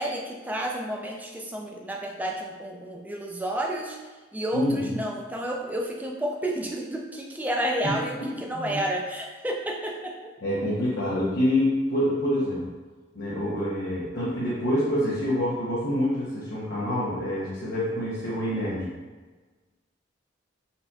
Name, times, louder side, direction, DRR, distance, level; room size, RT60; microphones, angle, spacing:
voice 1, 0.0-4.0 4.3-10.3, right 1 dB, 10° right, -1 dB, 0.3 m, -31 dB
voice 2, 4.5-5.0 7.8-8.3 8.5-8.8 10.4-12.6 13.1-18.9, left 1 dB, 60° left, -9 dB, 0.8 m, -26 dB
4.0 x 2.7 x 2.3 m, 1.3 s
head